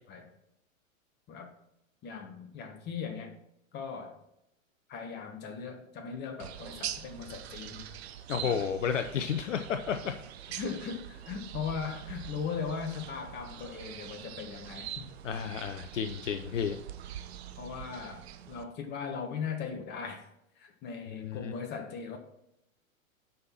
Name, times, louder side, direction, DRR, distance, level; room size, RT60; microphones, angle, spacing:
voice 1, 2.0-3.3 3.7-4.2 4.9-7.9 8.4-8.7 10.5-15.1 17.6-20.3 20.6-22.2, left 6 dB, 25° left, 5 dB, 1.5 m, -38 dB
sound 1, 6.4-18.6, right 10 dB, 50° right, 0.8 m, -44 dB
voice 2, 8.3-10.1 15.2-16.8 21.2-21.5, left 7 dB, 60° left, 8 dB, 0.7 m, -32 dB
9.5 x 5.7 x 4.4 m, 0.82 s
figure-of-eight pair, 100°, 42 cm